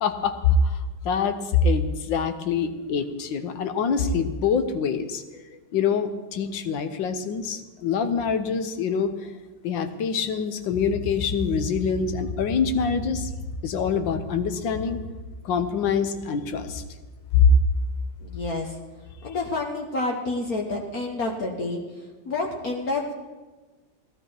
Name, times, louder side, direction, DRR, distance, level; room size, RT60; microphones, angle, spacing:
voice 1, 0.0-5.4 5.7-9.3 9.6-13.3 13.6-15.0 15.4-16.8 17.3-17.5, left 5 dB, 90° left, 9 dB, 1.6 m, -25 dB
voice 2, 18.2-18.8 19.2-21.8 22.2-23.2, left 2 dB, 55° left, 1 dB, 1.6 m, -29 dB
16.0 x 12.0 x 4.7 m, 1.3 s
omnidirectional pair, 2.0 m